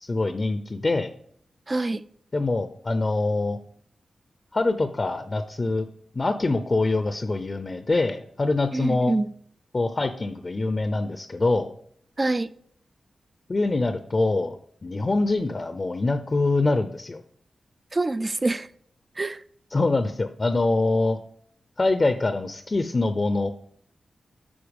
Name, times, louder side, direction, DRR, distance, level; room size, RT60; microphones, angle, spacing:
voice 1, 0.0-1.1 2.3-3.6 4.5-5.9 6.1-9.1 9.7-11.7 13.5-17.2 19.7-21.2 21.8-23.5, left 2 dB, 40° left, 0.6 m, -24 dB
voice 2, 1.7-2.0 8.7-9.3 12.2-12.5 17.9-18.7 19.2-19.4, right 2 dB, 35° right, 0.4 m, -25 dB
8.8 x 4.3 x 5.3 m
cardioid pair, 55°, 0 cm